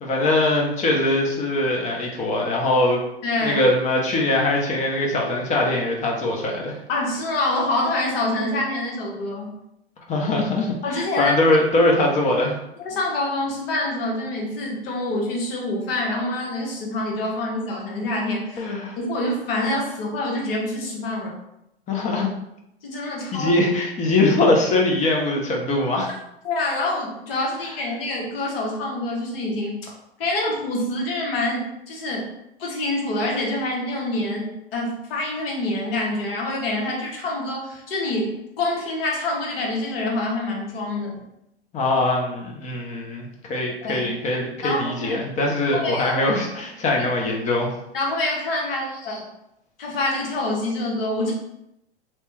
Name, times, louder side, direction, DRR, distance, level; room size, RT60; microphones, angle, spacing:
voice 1, 0.0-3.0 3.4-6.8 10.1-12.6 18.6-19.0 21.9-22.3 23.3-26.1 41.7-47.7, left 2 dB, 25° left, 0 dB, 0.6 m, -22 dB
voice 2, 3.2-3.6 6.9-9.6 10.8-11.4 12.8-18.7 19.0-21.3 22.8-23.5 26.0-26.1 26.4-29.9 30.2-32.3 32.6-41.2 43.8-44.1 44.6-45.2 45.7-46.2 46.9-47.3 47.9-49.3 49.8-51.3, left 2 dB, 65° left, -2 dB, 1.1 m, -26 dB
2.9 x 2.1 x 3.2 m, 0.82 s
hypercardioid pair, 105°, 32 cm